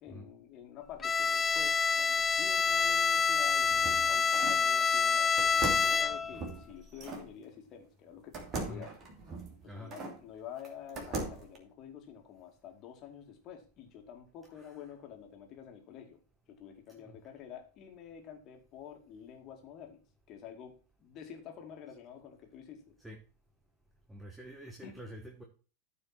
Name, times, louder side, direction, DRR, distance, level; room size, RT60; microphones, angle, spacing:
voice 1, 0.0-8.9 9.6-16.2 16.5-20.7 21.0-22.8 24.8-25.0, left 8 dB, 35° left, 3 dB, 2.4 m, -49 dB
Bowed string instrument, 1.0-6.4, left 5 dB, 20° left, 0.4 m, -27 dB
sound 1, 3.3-4.7 5.4-7.3 8.3-10.2 10.6-11.6, right 2 dB, 30° right, 2.6 m, -40 dB
voice 2, 24.1-25.4, equal, 5° right, 3 dB, 1.4 m, -47 dB
13.5 x 5.0 x 4.4 m, 0.36 s
figure-of-eight pair, 90°, 0 cm